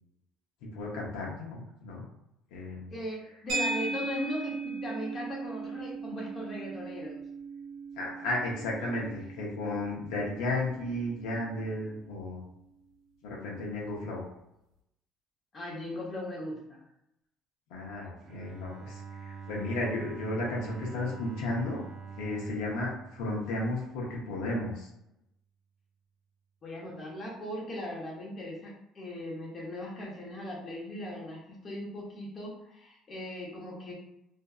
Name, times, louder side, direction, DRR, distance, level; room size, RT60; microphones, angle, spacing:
voice 1, 0.7-2.0 2.5-2.9 8.0-12.4 13.2-14.2 17.7-21.8 22.2-24.9, left 2 dB, 90° left, -4 dB, 0.7 m, -34 dB
voice 2, 2.9-7.2 15.5-16.8 26.6-33.9, left 1 dB, 40° left, -4 dB, 0.8 m, -39 dB
sound 1, 3.5-11.9, right 3 dB, 75° right, 0.9 m, -38 dB
Bowed string instrument, 18.2-24.1, right 5 dB, 50° right, 0.4 m, -45 dB
2.6 x 2.4 x 2.3 m, 0.84 s
cardioid pair, 105°, 0 cm